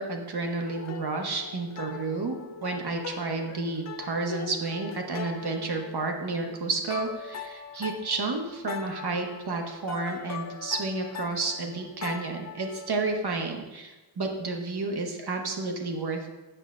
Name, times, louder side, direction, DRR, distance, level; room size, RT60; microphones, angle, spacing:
voice 1, 0.0-16.3, right 3 dB, 60° right, 3 dB, 1.1 m, -31 dB
sound 1, 0.6-6.6 6.9-13.2, left 8 dB, 40° left, 0.4 m, -41 dB
9.0 x 6.9 x 2.5 m, 1.1 s
wide cardioid pair, 115°, 43 cm